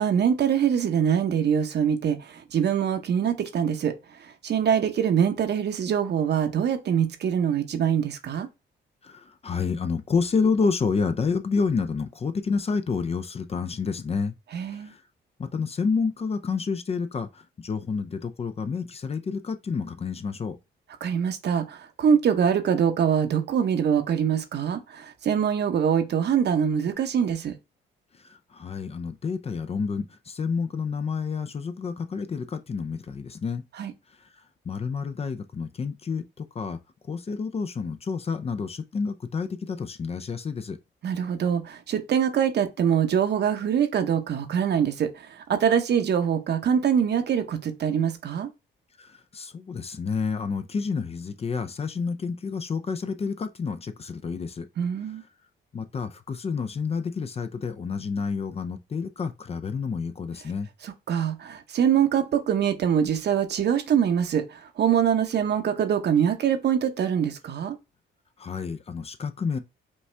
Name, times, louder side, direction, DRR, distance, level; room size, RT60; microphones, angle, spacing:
voice 1, 0.0-3.9 4.4-8.5 14.5-14.9 21.0-27.5 33.8-33.9 41.0-48.5 54.8-55.2 60.8-67.8, right 8 dB, 55° right, 0.8 m, -24 dB
voice 2, 9.0-14.3 14.7-15.0 15.4-20.6 28.2-33.6 34.7-36.8 37.1-40.8 49.0-54.7 55.7-60.7 68.4-69.6, left 5 dB, 30° left, 0.5 m, -29 dB
5.3 x 2.3 x 3.2 m
cardioid pair, 90°, 20 cm